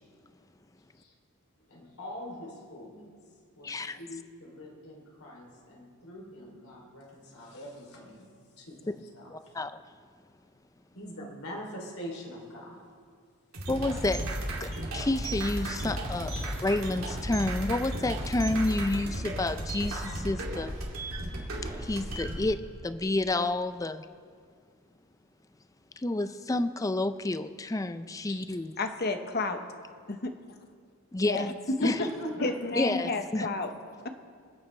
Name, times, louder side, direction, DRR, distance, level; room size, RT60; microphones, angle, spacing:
voice 1, 1.7-3.1 3.5-8.3 8.6-9.6 10.9-12.8 16.3-16.5 28.2-28.6 31.8-33.0 33.4-33.6, left 1 dB, 80° left, 0 dB, 3.1 m, -43 dB
voice 2, 3.6-4.0 9.3-9.8 13.7-14.3 14.6-16.3 16.6-20.7 21.6-24.1 26.0-28.7 31.1-31.5 31.8-32.0 32.8-33.5, left 2 dB, 15° left, 12 dB, 0.4 m, -30 dB
sound 1, 13.5-22.4, right 1 dB, 70° right, 2.6 m, -34 dB
voice 3, 28.8-29.6 30.1-30.3 31.3-31.5 31.8-31.9 32.4-33.7, left 3 dB, 45° left, 6 dB, 0.9 m, -30 dB
27.5 x 9.3 x 3.3 m, 2.1 s
head